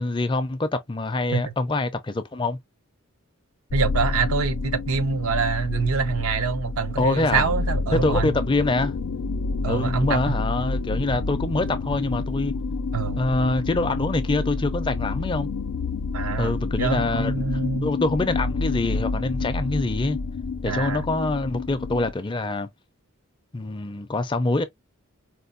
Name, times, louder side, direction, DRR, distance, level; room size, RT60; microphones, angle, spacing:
voice 1, 0.0-2.6 7.0-7.5 7.9-8.9 9.7-12.5 13.1-15.5 16.4-17.4 17.8-20.2 20.6-22.7 23.5-24.6, left 2 dB, 20° left, 0.4 m, -25 dB
sound 1, 3.7-22.1, left 3 dB, 80° left, 0.4 m, -29 dB
voice 2, 3.7-8.3 9.6-10.4 12.9-13.2 16.1-17.9 20.7-21.0, right 5 dB, 75° right, 0.6 m, -25 dB
4.4 x 2.2 x 2.5 m
head